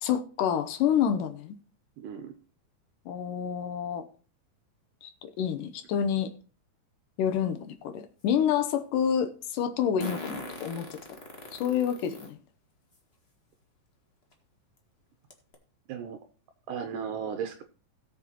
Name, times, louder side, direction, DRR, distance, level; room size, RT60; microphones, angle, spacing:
voice 1, 0.0-1.6 3.1-4.1 5.0-6.3 7.2-11.0 11.5-12.4, left 8 dB, 75° left, 9 dB, 2.4 m, -28 dB
voice 2, 2.0-2.3 15.9-16.2 16.7-17.6, right 7 dB, 80° right, 7 dB, 2.4 m, -35 dB
Fart, 7.3-7.4 10.0-12.3 12.9-13.0 14.3-14.4 14.8-14.9 15.3-15.5, left 2 dB, 30° left, 1.1 m, -39 dB
17.5 x 7.2 x 3.0 m, 0.37 s
omnidirectional pair, 3.9 m